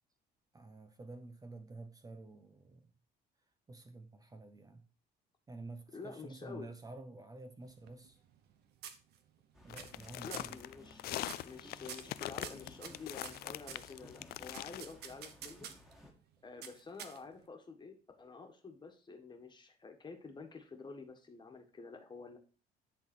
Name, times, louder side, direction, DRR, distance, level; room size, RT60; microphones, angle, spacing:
voice 1, 0.5-2.9 3.7-4.9 5.5-8.2 9.6-10.6, right 2 dB, 20° right, 0.8 m, -50 dB
voice 2, 5.9-6.7 10.2-15.7 16.4-22.4, left 4 dB, 25° left, 1.6 m, -49 dB
sound 1, 7.6-8.5 8.8-9.4 9.8-10.1 10.3-10.6 11.2-11.6 11.9-13.9 14.5-15.9 16.6-17.5, right 8 dB, 75° right, 1.1 m, -48 dB
sound 2, 9.5-16.1, left 1 dB, ahead, 1.8 m, -58 dB
sound 3, 9.7-14.8, left 15 dB, 65° left, 0.4 m, -43 dB
10.5 x 4.1 x 4.4 m
cardioid pair, 110°, 17 cm